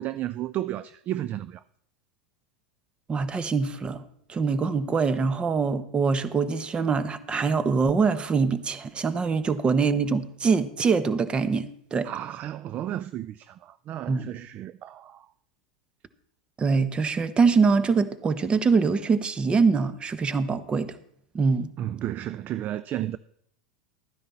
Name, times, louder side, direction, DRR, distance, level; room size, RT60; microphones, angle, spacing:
voice 1, 0.0-1.6 12.0-15.3 21.8-23.2, right 13 dB, 40° right, 0.3 m, -33 dB
voice 2, 3.1-4.0 4.3-12.1 14.1-14.3 16.6-21.0 21.3-21.7, right 5 dB, 25° right, 0.9 m, -24 dB
12.5 x 10.0 x 4.2 m
hypercardioid pair, 100°, 4 cm